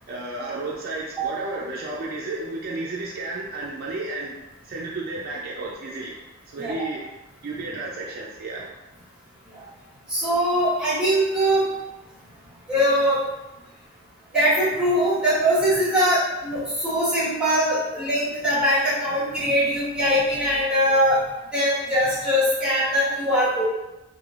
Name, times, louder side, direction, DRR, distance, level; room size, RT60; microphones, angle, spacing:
voice 1, 0.1-4.4 4.6-6.1 6.5-7.0 7.4-8.7, right 2 dB, 50° right, -4 dB, 0.4 m, -32 dB
voice 2, 10.1-11.7 12.7-13.2 14.3-21.2 21.5-23.6, equal, 5° right, -12 dB, 1.4 m, -21 dB
3.2 x 2.6 x 2.4 m, 1.0 s
head